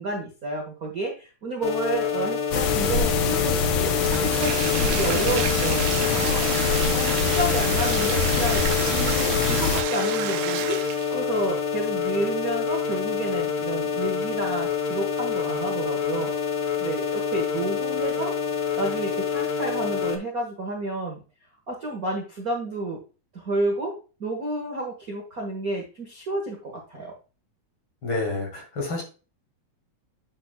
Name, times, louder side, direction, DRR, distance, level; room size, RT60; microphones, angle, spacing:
voice 1, 0.0-6.4 6.9-10.8 11.1-16.3 16.8-18.3 18.8-21.2 21.7-23.0 23.3-27.1, right 2 dB, 45° right, 0 dB, 1.2 m, -30 dB
sound 1, 1.6-20.2, left 7 dB, 65° left, 2.1 m, -27 dB
sound 2, 2.5-9.8, left 5 dB, 90° left, 1.0 m, -25 dB
Bathtub (filling or washing), 4.0-11.2, right 14 dB, 85° right, 2.0 m, -31 dB
voice 2, 28.0-29.0, left 2 dB, 45° left, 1 dB, 2.4 m, -28 dB
8.5 x 5.8 x 2.2 m, 0.34 s
omnidirectional pair, 3.4 m